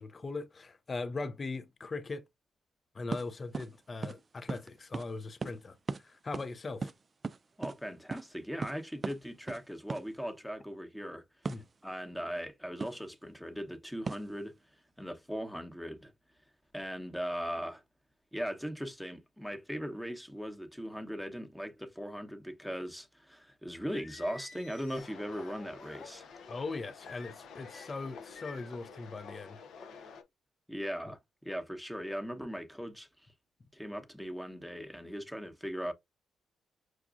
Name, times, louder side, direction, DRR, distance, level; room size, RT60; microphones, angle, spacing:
voice 1, 0.0-2.2 2.9-6.9 11.5-11.6 26.5-29.6, left 3 dB, 40° left, 0.5 m, -40 dB
sound 1, 3.1-3.3 3.5-3.7 4.0-4.2 4.5-4.7 4.9-5.1 5.4-5.6 5.9-6.0 6.3-6.5 6.8-7.8 8.1-8.2 8.6-8.8 9.0-9.2 9.5-9.6 9.9-10.0 11.4-11.7 12.8-13.0 14.1-14.3, right 4 dB, 40° right, 0.3 m, -37 dB
voice 2, 7.6-11.2 11.8-14.5 15.0-16.1 16.7-17.8 18.3-26.3 30.7-31.2 31.4-33.1 33.7-35.9, equal, 5° left, 1.0 m, -39 dB
Singing, 23.9-26.1 27.0-27.9 28.3-28.9, left 4 dB, 60° left, 1.2 m, -52 dB
sound 2, 24.9-30.2, left 5 dB, 75° left, 0.8 m, -50 dB
6.0 x 2.3 x 2.4 m
supercardioid pair, 60°, 0 cm